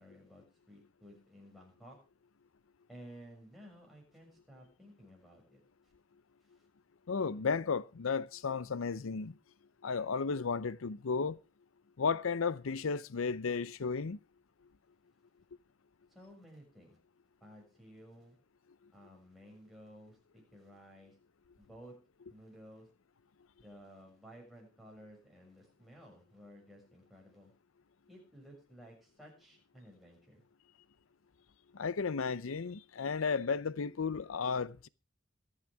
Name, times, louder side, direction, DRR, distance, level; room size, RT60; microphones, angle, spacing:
voice 1, 0.0-2.0 2.9-5.6 16.1-17.0 17.4-18.4 18.9-21.1 21.6-21.9 22.3-22.9 23.6-27.5 28.1-30.4, equal, ahead, 6.6 m, -55 dB
voice 2, 7.1-9.3 9.8-11.4 12.0-14.2 31.7-34.9, left 5 dB, 90° left, 0.6 m, -34 dB
24.0 x 8.9 x 3.5 m
head